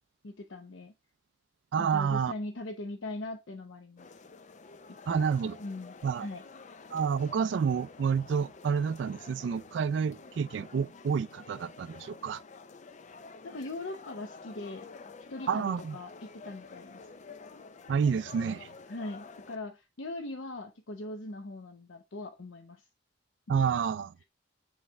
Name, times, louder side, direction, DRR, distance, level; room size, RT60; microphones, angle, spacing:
voice 1, 0.2-0.9 1.8-4.2 5.1-5.3 5.6-6.4 13.4-14.9 15.3-17.0 18.9-22.9, left 2 dB, 85° left, 0.7 m, -40 dB
voice 2, 1.7-2.3 5.1-5.6 6.0-6.3 6.9-12.4 15.5-16.0 17.9-18.7 23.5-24.1, right 6 dB, 70° right, 0.3 m, -29 dB
sound 1, 4.0-19.6, left 4 dB, 40° left, 0.5 m, -50 dB
9.4 x 3.2 x 3.4 m
head